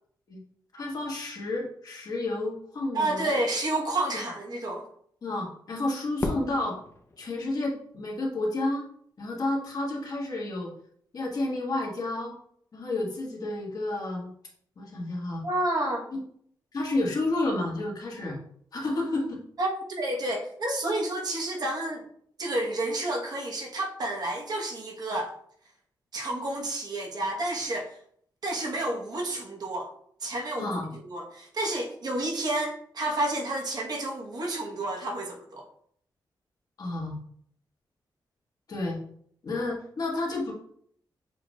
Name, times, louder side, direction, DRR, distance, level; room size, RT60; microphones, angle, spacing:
voice 1, 0.7-3.3 5.2-6.8 7.2-8.8 9.2-10.7 11.1-12.4 12.7-14.3 14.8-15.4 16.1-16.2 16.7-18.4 18.7-19.4 30.6-30.9 36.8-37.2 38.7-39.0 39.4-40.5, left 2 dB, 50° left, -2 dB, 1.4 m, -30 dB
voice 2, 2.9-4.9 15.4-16.1 19.6-22.0 22.4-25.3 26.1-28.0 28.4-29.9 30.2-35.7, right 1 dB, 55° right, 0 dB, 1.1 m, -30 dB
Fireworks, 6.2-8.4, left 2 dB, 30° left, 0.8 m, -36 dB
6.8 x 2.5 x 3.1 m, 0.63 s
wide cardioid pair, 105°, 8 cm